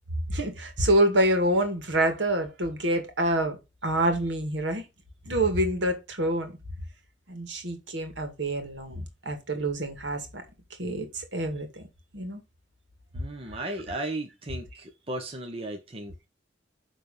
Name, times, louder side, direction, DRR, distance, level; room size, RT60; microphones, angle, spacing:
voice 1, 0.3-4.9 5.3-6.5 7.3-10.4 10.8-11.8 12.1-12.4, right 1 dB, 70° right, 2.2 m, -27 dB
voice 2, 13.1-16.3, right 1 dB, 30° right, 1.1 m, -35 dB
10.0 x 3.6 x 5.5 m
head